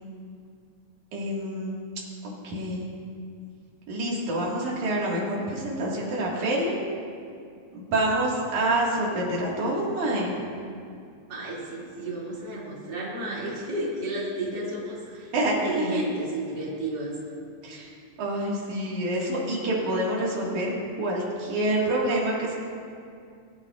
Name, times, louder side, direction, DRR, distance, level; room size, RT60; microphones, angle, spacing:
voice 1, 1.1-1.8 2.4-2.9 3.9-6.8 7.7-10.3 15.3-16.1 17.6-17.9 18.2-20.7 21.0-22.5, right 1 dB, 90° right, -4 dB, 3.3 m, -27 dB
voice 2, 11.3-15.3 15.6-17.1, right 2 dB, 40° right, -6 dB, 2.9 m, -32 dB
20.5 x 10.5 x 2.4 m, 2.4 s
omnidirectional pair, 3.3 m